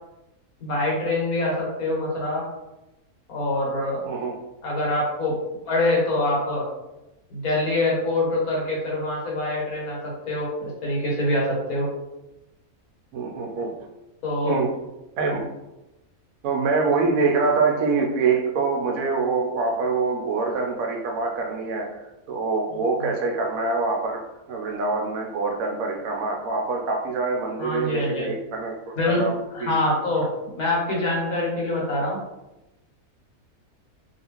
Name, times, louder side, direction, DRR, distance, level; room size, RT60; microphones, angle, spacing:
voice 1, 0.6-2.4 3.3-4.0 4.6-5.4 5.6-6.7 7.3-11.9 14.2-14.6 23.0-23.1 27.6-28.3 28.9-29.2 29.5-32.2, left 2 dB, 80° left, -4 dB, 1.6 m, -25 dB
voice 2, 4.0-4.4 13.1-13.7 14.4-14.7 15.2-15.4 16.4-21.9 22.3-24.2 24.5-29.3 29.6-29.8 30.9-31.2, right 4 dB, 75° right, 2 dB, 1.0 m, -25 dB
3.0 x 2.7 x 2.9 m, 0.96 s
omnidirectional pair, 1.5 m